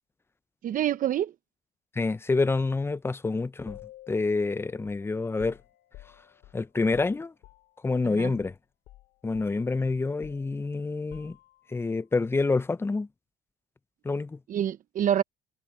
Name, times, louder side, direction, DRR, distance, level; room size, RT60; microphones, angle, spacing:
voice 1, 0.6-1.3 8.1-8.3 14.5-15.2, right 10 dB, 55° right, 0.8 m, -26 dB
voice 2, 2.0-3.8 4.1-5.6 6.5-7.3 7.8-8.5 9.2-11.4 11.7-13.1 14.0-14.4, left 3 dB, 15° left, 0.6 m, -27 dB
sound 1, 3.7-8.1 8.4-8.6 8.9-11.8, left 15 dB, 80° left, 3.3 m, -51 dB
cardioid pair, 110°, 17 cm